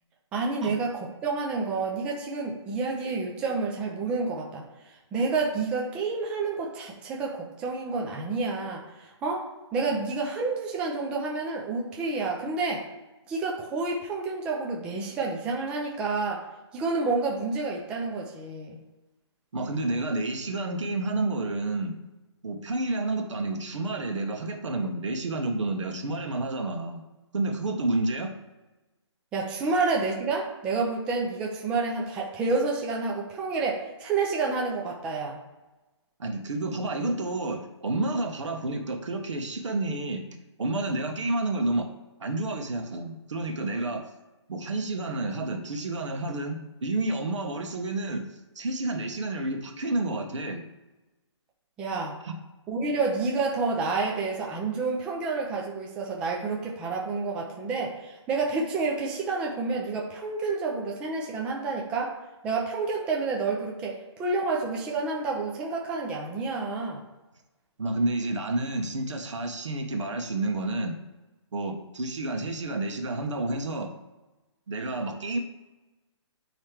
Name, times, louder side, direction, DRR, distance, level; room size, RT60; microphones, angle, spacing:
voice 1, 0.3-4.6 5.1-12.9 13.3-16.5 16.7-18.8 29.3-35.4 51.8-52.2 52.7-62.2 62.4-67.0, right 4 dB, 5° right, -1 dB, 0.4 m, -29 dB
voice 2, 19.5-22.0 22.4-27.0 27.3-28.3 36.2-40.2 40.6-41.9 42.2-44.0 44.5-48.2 48.5-50.6 52.2-52.3 67.8-71.0 71.5-73.9 74.7-75.4, right 2 dB, 85° right, 4 dB, 1.4 m, -30 dB
9.0 x 3.2 x 3.4 m, 1.1 s
hypercardioid pair, 165°, 15 cm